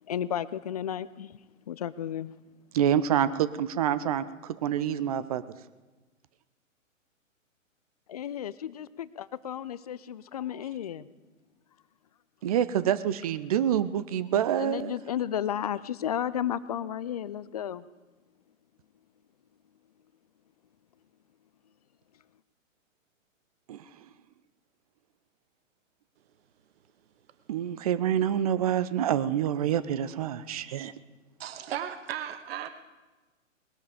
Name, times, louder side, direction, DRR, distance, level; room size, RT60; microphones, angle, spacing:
voice 1, 0.0-2.3 8.1-11.1 14.6-17.9, left 10 dB, 30° left, 17 dB, 0.4 m, -33 dB
voice 2, 2.7-5.4 12.4-14.9 23.7-23.8 27.5-30.9, right 10 dB, 30° right, 15 dB, 0.5 m, -27 dB
voice 3, 31.4-32.7, right 10 dB, 50° right, 11 dB, 1.0 m, -36 dB
20.0 x 12.5 x 5.0 m, 1.2 s
figure-of-eight pair, 125°, 40 cm